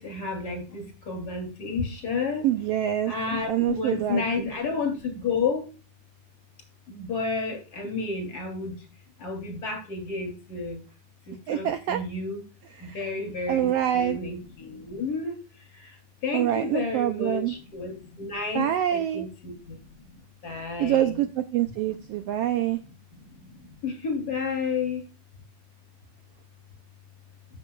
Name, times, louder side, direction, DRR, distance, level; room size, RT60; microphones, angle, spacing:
voice 1, 0.0-2.4 3.1-5.6 6.9-8.7 9.2-10.8 11.5-12.4 12.9-13.7 13.9-15.3 16.2-19.5 20.4-21.2 23.8-25.0, left 4 dB, 30° left, 3 dB, 3.3 m, -31 dB
voice 2, 2.4-3.1 3.5-4.5 11.5-12.0 12.8-13.1 13.5-14.2 16.3-17.5 18.5-19.3 20.8-22.8, right 11 dB, 85° right, 9 dB, 1.4 m, -26 dB
13.5 x 6.8 x 2.3 m, 0.34 s
omnidirectional pair, 3.4 m